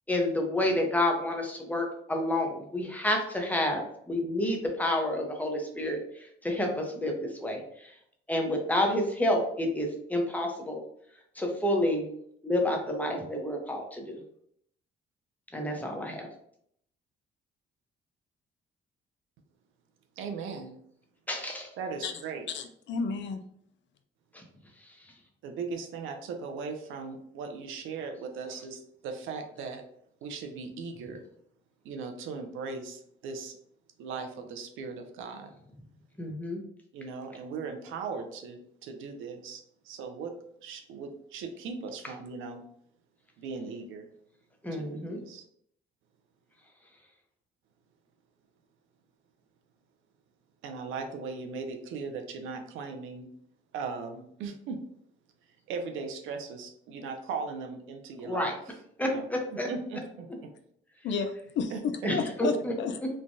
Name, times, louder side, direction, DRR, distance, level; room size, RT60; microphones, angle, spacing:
voice 1, 0.1-7.9 8.3-10.8 11.4-12.0 12.4-14.2 15.5-16.3 21.3-21.7 24.3-24.4 24.8-24.9 36.2-36.6 44.6-45.2 58.2-58.5 59.0-59.7 62.0-62.7 63.0-63.1, left 1 dB, 10° left, 1 dB, 0.7 m, -29 dB
voice 2, 20.2-20.8 21.8-22.5 25.4-29.8 30.2-31.2 31.8-33.6 34.0-35.5 36.9-42.7 43.4-44.1 44.7-45.4 50.6-53.3 53.7-54.8 55.7-58.5 59.0-59.3 59.5-60.5 61.7-61.8, right 5 dB, 90° right, 6 dB, 0.5 m, -38 dB
voice 3, 22.5-23.4 61.0-61.7 62.1-62.9, left 5 dB, 65° left, 7 dB, 0.4 m, -31 dB
3.2 x 2.2 x 2.6 m, 0.69 s
cardioid pair, 90°, 20 cm